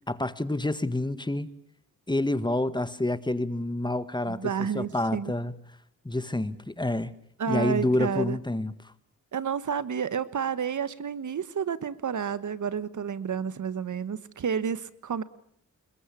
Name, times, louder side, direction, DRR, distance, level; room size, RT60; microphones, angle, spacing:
voice 1, 0.1-1.5 2.1-5.5 6.1-7.1 7.5-8.7, left 1 dB, 15° left, 13 dB, 1.7 m, -28 dB
voice 2, 4.3-5.3 7.4-8.4 9.3-15.2, right 7 dB, 65° right, 15 dB, 1.4 m, -30 dB
28.0 x 21.5 x 8.5 m, 0.66 s
cardioid pair, 75°, 33 cm